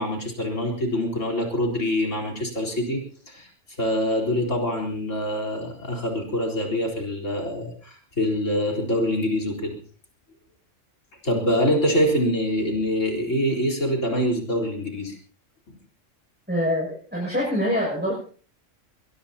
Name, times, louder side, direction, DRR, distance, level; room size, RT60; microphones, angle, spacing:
voice 1, 0.0-3.0 3.3-3.5 3.8-9.8 11.2-15.2 15.7-15.8, equal, 80° left, 3 dB, 4.6 m, -25 dB
voice 2, 16.5-18.2, equal, 10° right, -5 dB, 6.9 m, -25 dB
22.0 x 22.0 x 2.9 m, 0.43 s
omnidirectional pair, 1.3 m